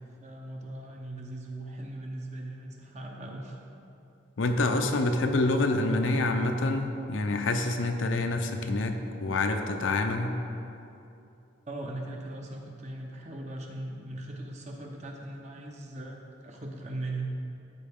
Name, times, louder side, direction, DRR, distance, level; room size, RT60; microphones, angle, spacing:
voice 1, 0.2-3.6 11.7-16.2 16.4-17.3, right 2 dB, 35° right, 1 dB, 0.8 m, -39 dB
voice 2, 4.4-10.3, left 2 dB, 75° left, 5 dB, 0.6 m, -27 dB
12.5 x 4.7 x 3.6 m, 2.7 s
head